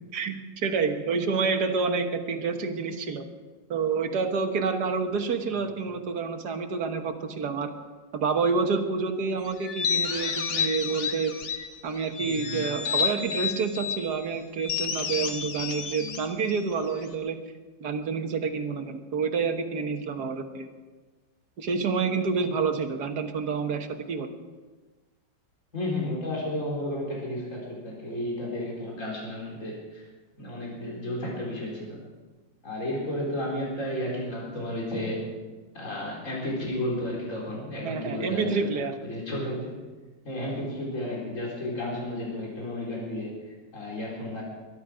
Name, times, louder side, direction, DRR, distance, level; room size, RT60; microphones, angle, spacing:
voice 1, 0.1-3.2 3.7-7.7 8.1-11.3 11.8-17.4 17.8-20.7 21.6-24.3 37.8-39.0, right 5 dB, 60° right, 6 dB, 1.8 m, -28 dB
sound 1, 9.6-11.7 12.1-14.0 14.6-17.1, left 6 dB, 90° left, 2.0 m, -30 dB
voice 2, 12.2-12.7 15.2-15.3 25.7-30.0 30.4-32.0 32.6-35.2 35.7-38.7 39.0-39.8 40.2-43.3 43.7-44.4, left 1 dB, 40° left, -4 dB, 4.5 m, -32 dB
22.5 x 11.5 x 5.0 m, 1.3 s
omnidirectional pair, 2.0 m